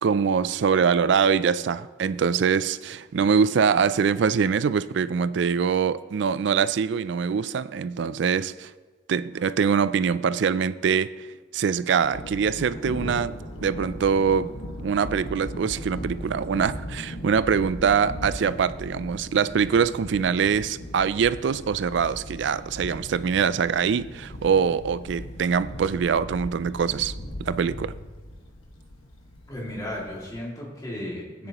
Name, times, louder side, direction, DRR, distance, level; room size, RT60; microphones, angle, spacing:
voice 1, 0.0-8.7 9.1-11.3 11.5-13.4 13.6-14.5 14.8-27.1 27.4-27.9, right 6 dB, 60° right, 16 dB, 0.3 m, -23 dB
Thunder, 12.0-30.4, left 1 dB, 90° left, 1.6 m, -38 dB
voice 2, 29.5-31.5, left 1 dB, 20° left, -5 dB, 2.4 m, -34 dB
14.5 x 9.7 x 3.0 m, 1.3 s
head